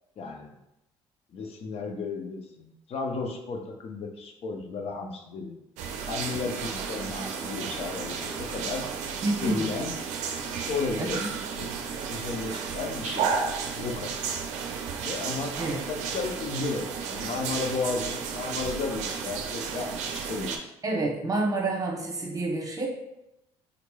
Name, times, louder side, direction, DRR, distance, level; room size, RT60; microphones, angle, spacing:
voice 1, 0.2-0.5 1.3-5.7 6.1-8.9 9.4-9.9 10.6-11.2 11.6-13.3 13.8-14.2 14.5-14.6 15.0-15.6 15.9-20.6, left 4 dB, 55° left, 3 dB, 0.6 m, -34 dB
sound 1, 5.8-20.6, right 6 dB, 75° right, 0.4 m, -33 dB
voice 2, 9.2-9.7 11.0-11.3 15.6-15.8 20.8-22.9, right 2 dB, 30° right, -1 dB, 0.9 m, -28 dB
3.8 x 3.0 x 2.2 m, 0.88 s
supercardioid pair, 70°, 12 cm